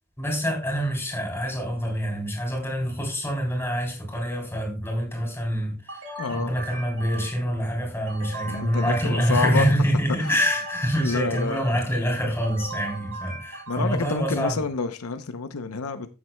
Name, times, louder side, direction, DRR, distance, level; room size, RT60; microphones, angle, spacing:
voice 1, 0.2-6.0 6.3-14.6, equal, 10° left, 3.3 m, -26 dB
sound 1, 5.9-7.5 8.1-9.8 10.2-11.9 12.4-14.1, right 2 dB, 85° right, 3.5 m, -39 dB
voice 2, 6.2-6.5 8.5-9.8 10.2-10.4 11.0-11.8 13.7-16.1, left 4 dB, 85° left, 0.7 m, -28 dB
14.0 x 7.4 x 2.2 m
head